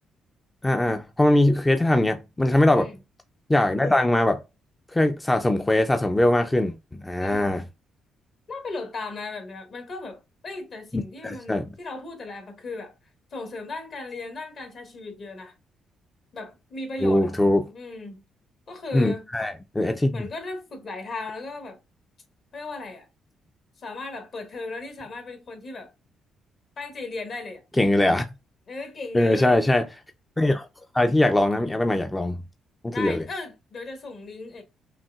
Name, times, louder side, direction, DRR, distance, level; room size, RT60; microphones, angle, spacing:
voice 1, 0.6-2.9 3.5-4.4 4.9-7.6 10.9-11.6 17.0-17.6 18.9-20.3 27.8-28.2 29.1-29.9 30.4-30.7 30.9-32.4 32.8-33.2, left 1 dB, 15° left, 0.5 m, -21 dB
voice 2, 7.2-7.6 8.5-12.9 13.3-15.5 16.3-17.3 17.7-18.2 18.7-19.3 20.1-21.8 22.5-23.1 23.8-25.9 26.8-27.6 28.7-29.7 32.9-34.6, left 3 dB, 55° left, 1.6 m, -36 dB
5.6 x 2.5 x 2.3 m
cardioid pair, 80°, 0 cm